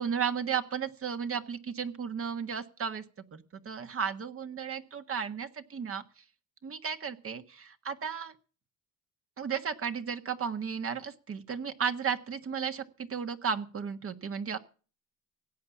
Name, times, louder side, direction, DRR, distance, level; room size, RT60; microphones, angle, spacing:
voice 1, 0.0-3.0 3.3-6.0 6.6-8.3 9.4-14.6, right 7 dB, 45° right, 8 dB, 1.5 m, -34 dB
17.0 x 8.5 x 7.2 m, 0.38 s
cardioid pair, 90°, 30 cm